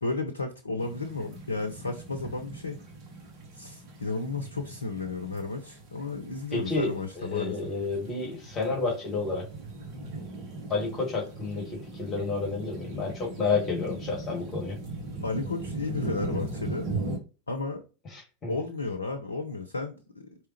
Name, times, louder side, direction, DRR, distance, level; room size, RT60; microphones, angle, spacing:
voice 1, 0.0-2.8 3.5-7.6 15.2-16.9 17.5-17.8 18.5-20.3, left 3 dB, 75° left, 6 dB, 0.6 m, -33 dB
sound 1, 0.8-17.2, right 2 dB, 40° right, 1.1 m, -39 dB
voice 2, 6.5-6.9 7.1-9.4 10.7-14.8 18.1-18.5, left 4 dB, 25° left, -2 dB, 2.1 m, -30 dB
4.8 x 3.1 x 3.1 m, 0.34 s
figure-of-eight pair, 90°, 0 cm